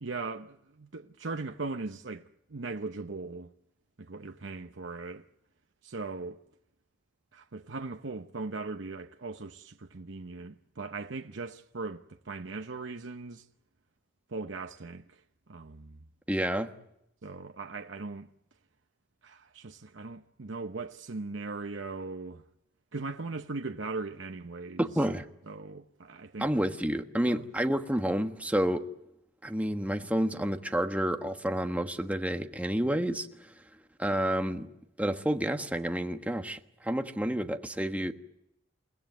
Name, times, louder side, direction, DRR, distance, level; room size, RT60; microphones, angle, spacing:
voice 1, 0.0-3.5 4.0-5.2 5.8-6.4 7.3-13.5 14.3-15.2 15.5-16.1 17.2-18.3 19.2-22.4 22.9-24.8 25.5-26.5 27.3-27.5, right 3 dB, 80° right, 0.9 m, -39 dB
voice 2, 16.3-16.7 24.8-25.2 26.4-28.9 29.4-33.3 34.0-34.7 35.0-38.1, right 1 dB, 10° right, 1.3 m, -29 dB
29.5 x 16.5 x 9.4 m
head